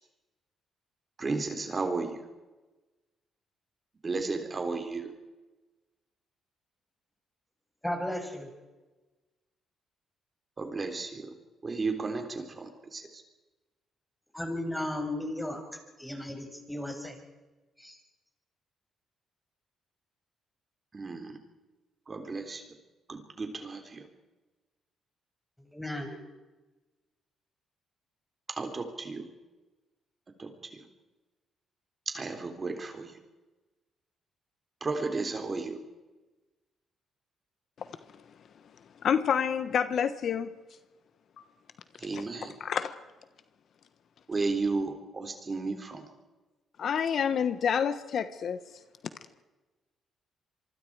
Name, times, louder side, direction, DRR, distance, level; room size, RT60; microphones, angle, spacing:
voice 1, 1.2-2.2 4.0-5.1 10.6-11.3 11.6-13.2 20.9-21.3 22.1-22.6 23.1-24.1 28.5-29.3 30.4-30.9 32.1-33.1 34.8-35.8 42.0-42.5 44.3-46.1, right 3 dB, 30° right, 5 dB, 3.6 m, -33 dB
voice 2, 7.8-8.5 14.3-15.6 16.0-17.2 17.8-18.0 25.7-26.1, left 1 dB, 5° left, 3 dB, 6.2 m, -35 dB
voice 3, 39.0-40.6 42.1-42.2 42.6-43.0 46.8-48.6, left 7 dB, 60° left, 11 dB, 1.2 m, -28 dB
26.5 x 24.0 x 4.9 m, 1.2 s
cardioid pair, 90°, 0 cm